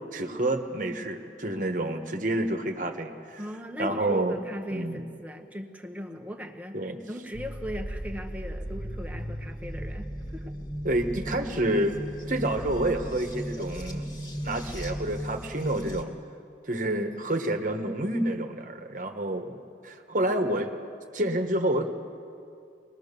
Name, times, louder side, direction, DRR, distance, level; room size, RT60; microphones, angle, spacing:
voice 1, 0.1-3.5 3.8-4.4 4.7-5.0 6.7-7.0 10.8-11.9 12.3-16.1 16.7-20.7 21.1-21.9, right 1 dB, 45° right, 6 dB, 1.3 m, -28 dB
voice 2, 3.4-6.8 7.1-10.5, equal, 10° right, 3 dB, 1.2 m, -38 dB
sound 1, 7.3-16.0, equal, 25° left, 2.0 m, -36 dB
23.5 x 19.5 x 6.8 m, 2.5 s
head